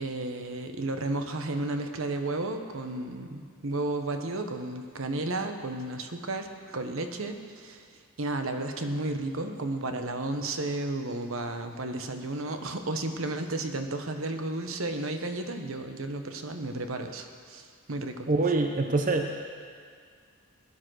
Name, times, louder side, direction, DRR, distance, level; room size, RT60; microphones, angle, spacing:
voice 1, 0.0-7.8 8.2-18.3, right 2 dB, 65° right, 6 dB, 1.1 m, -33 dB
voice 2, 18.3-19.4, right 3 dB, 40° right, 4 dB, 0.8 m, -25 dB
17.5 x 10.5 x 6.3 m, 2.1 s
head